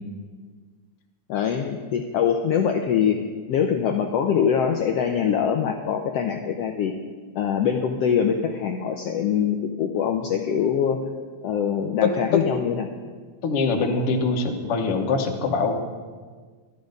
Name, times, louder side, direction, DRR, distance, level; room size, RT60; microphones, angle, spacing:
voice 1, 1.3-3.2 3.5-6.9 7.3-11.0 11.4-12.9, left 8 dB, 80° left, 4 dB, 1.4 m, -23 dB
voice 2, 12.0-12.4 13.4-15.8, left 4 dB, 60° left, 4 dB, 1.7 m, -23 dB
13.0 x 11.5 x 5.2 m, 1.5 s
omnidirectional pair, 3.7 m